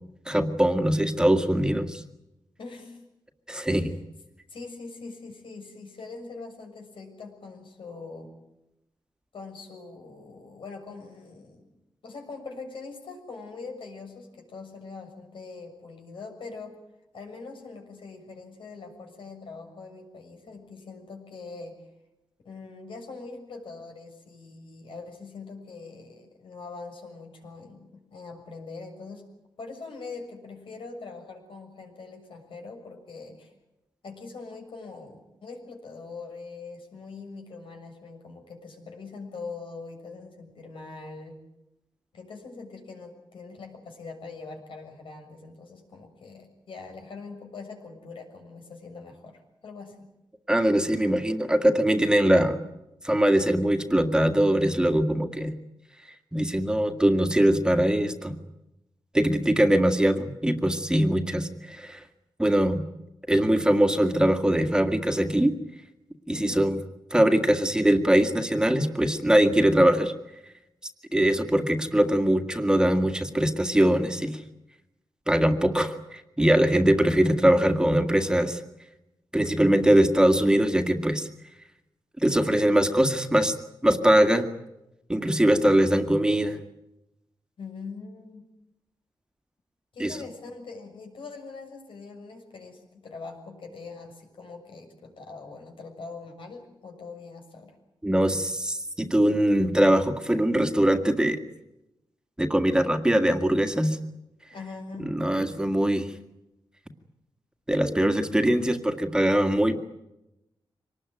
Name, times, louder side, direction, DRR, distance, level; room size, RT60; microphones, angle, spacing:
voice 1, 0.3-2.0 3.5-3.9 50.5-52.6 53.0-55.5 56.3-58.4 59.1-62.0 62.4-62.8 63.3-65.5 66.3-66.8 67.1-70.1 71.1-74.4 75.3-78.6 79.3-81.3 82.2-83.5 83.8-84.5 85.1-86.6 90.0-90.2 98.0-101.4 102.4-104.0 105.0-106.1 107.7-109.8, right 1 dB, 10° right, 6 dB, 1.9 m, -22 dB
voice 2, 2.6-3.0 3.7-4.0 4.5-8.3 9.3-11.7 12.0-16.8 17.1-21.8 22.4-29.3 29.6-33.5 34.0-41.4 42.1-50.1 66.3-66.7 87.6-88.4 89.9-97.7 104.5-105.1, left 4 dB, 85° left, 4 dB, 6.9 m, -42 dB
25.0 x 20.0 x 9.2 m, 0.91 s
wide cardioid pair, 130°, 9 cm